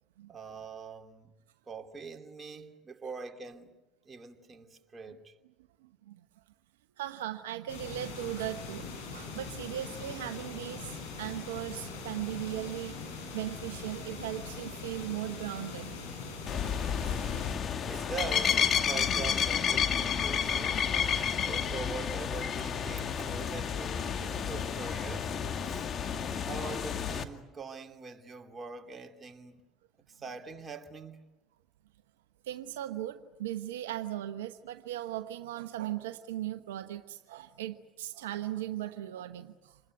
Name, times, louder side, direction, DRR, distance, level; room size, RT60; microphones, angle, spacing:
voice 1, 0.3-1.3 1.7-3.7 4.0-5.3 17.8-20.9 21.4-25.4 25.6-25.9 26.5-29.6 30.1-31.2, right 5 dB, 30° right, 2.8 m, -43 dB
voice 2, 7.0-10.9 11.2-13.0 13.3-15.9 17.1-17.2 17.5-17.6 17.9-18.1 21.3-21.4 25.7-26.3 32.5-39.8, right 13 dB, 85° right, 1.0 m, -38 dB
sound 1, 7.7-17.6, left 4 dB, 85° left, 7.9 m, -42 dB
sound 2, 16.5-27.2, left 7 dB, 45° left, 2.2 m, -31 dB
27.5 x 20.5 x 9.5 m
hypercardioid pair, 70°, 0 cm